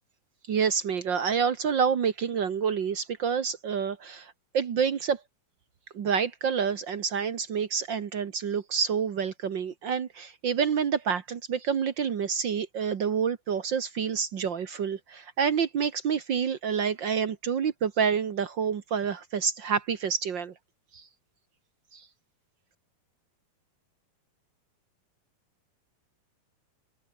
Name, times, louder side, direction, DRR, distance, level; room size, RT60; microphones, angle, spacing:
voice 1, 0.5-5.2 5.9-20.5 20.9-21.1 21.9-22.1, right 7 dB, 70° right, 1.0 m, -28 dB
omnidirectional pair, 4.3 m